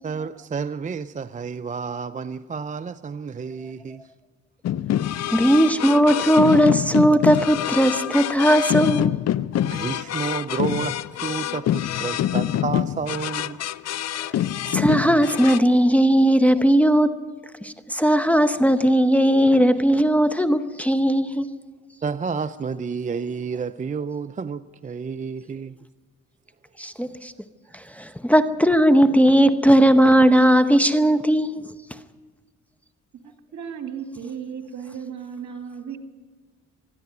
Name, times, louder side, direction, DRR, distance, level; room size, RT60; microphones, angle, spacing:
voice 1, 0.0-4.1 9.6-13.6 22.0-25.8, right 5 dB, 25° right, 0.5 m, -30 dB
sound 1, 4.6-15.6, left 11 dB, 60° left, 0.6 m, -26 dB
voice 2, 5.3-9.1 14.7-17.2 17.6-21.5 26.8-27.3 27.7-31.6, equal, 5° left, 0.9 m, -18 dB
voice 3, 33.5-36.0, right 7 dB, 70° right, 2.4 m, -35 dB
26.0 x 10.5 x 9.6 m
cardioid pair, 90°, 30 cm